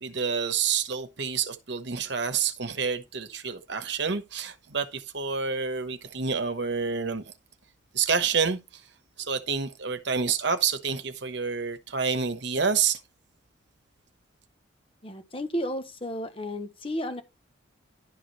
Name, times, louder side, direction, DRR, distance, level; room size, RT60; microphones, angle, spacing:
voice 1, 0.0-7.2 7.9-8.8 9.2-13.0, right 6 dB, 60° right, 1.1 m, -28 dB
voice 2, 15.0-17.2, equal, 30° left, 1.1 m, -33 dB
11.5 x 5.0 x 4.2 m
head